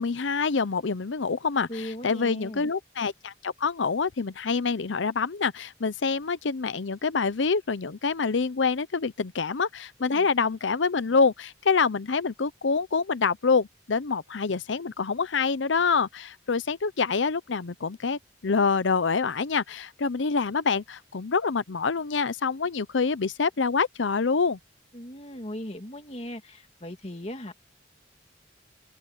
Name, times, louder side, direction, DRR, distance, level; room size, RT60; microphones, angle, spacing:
voice 1, 0.0-24.6, left 5 dB, 75° left, 0.7 m, -26 dB
voice 2, 1.7-2.7 10.0-10.3 24.9-27.5, left 1 dB, 35° left, 2.4 m, -38 dB
head